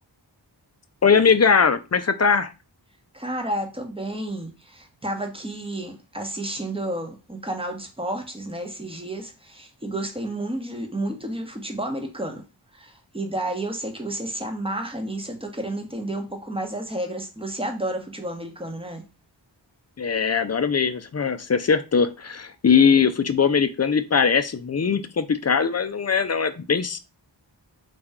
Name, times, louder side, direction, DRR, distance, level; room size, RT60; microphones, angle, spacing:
voice 1, 1.0-2.5 20.0-27.0, left 6 dB, 40° left, 0.4 m, -20 dB
voice 2, 3.1-12.4 12.7-19.0, right 1 dB, 15° right, 0.9 m, -31 dB
4.1 x 2.3 x 3.6 m
wide cardioid pair, 50°, 43 cm